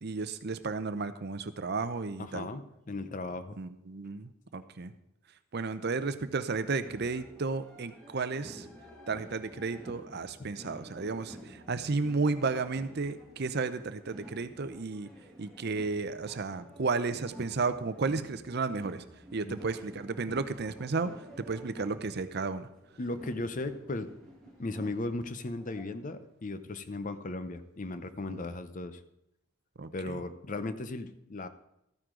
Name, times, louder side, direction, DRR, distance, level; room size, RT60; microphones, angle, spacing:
voice 1, 0.0-2.5 3.6-4.9 5.5-8.7 9.1-15.1 15.4-19.0 19.3-21.1 21.4-22.7 28.3-28.4 29.8-30.1, right 4 dB, 50° right, 12 dB, 0.6 m, -33 dB
voice 2, 2.2-3.6 10.4-10.5 19.4-19.6 20.3-20.4 23.0-24.1 24.6-29.0 29.9-31.5, left 2 dB, 40° left, 12 dB, 0.6 m, -37 dB
sound 1, 6.8-25.8, equal, 5° left, 2.2 m, -51 dB
13.5 x 9.4 x 3.8 m, 0.84 s
head